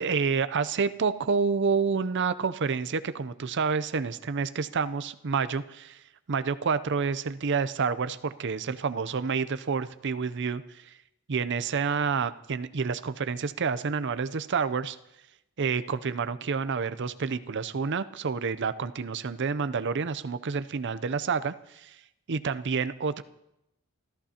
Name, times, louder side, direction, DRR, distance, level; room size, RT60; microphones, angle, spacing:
voice 1, 0.0-6.0 6.3-10.9 11.3-15.0 15.6-22.0 22.3-23.2, right 5 dB, 55° right, 13 dB, 0.6 m, -29 dB
28.5 x 14.0 x 2.9 m, 0.85 s
head